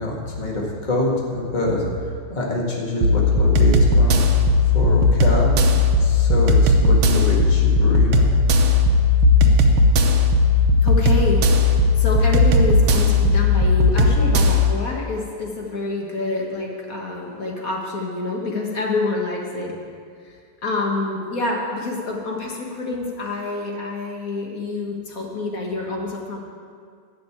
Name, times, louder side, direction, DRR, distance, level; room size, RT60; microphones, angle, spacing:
voice 1, 0.0-1.8 2.3-4.3 4.7-5.6 6.0-8.3 9.2-9.3, left 1 dB, 20° left, -2 dB, 1.7 m, -25 dB
sound 1, 3.0-14.7, left 2 dB, 75° right, 1.7 m, -16 dB
voice 2, 10.8-19.8 20.2-26.4, left 3 dB, 45° left, -1 dB, 1.7 m, -27 dB
12.0 x 6.1 x 8.7 m, 2.1 s
omnidirectional pair, 2.4 m